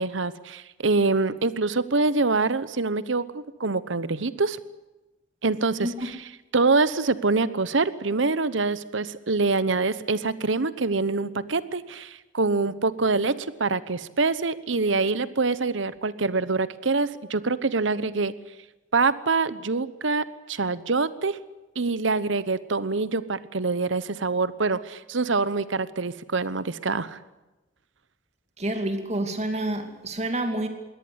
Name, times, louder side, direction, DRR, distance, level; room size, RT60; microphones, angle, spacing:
voice 1, 0.0-4.6 5.4-18.3 18.9-21.4 21.8-27.2, right 3 dB, 70° right, 16 dB, 1.0 m, -25 dB
voice 2, 28.6-30.7, right 1 dB, 35° right, 6 dB, 2.7 m, -28 dB
22.5 x 17.5 x 8.1 m, 1.1 s
head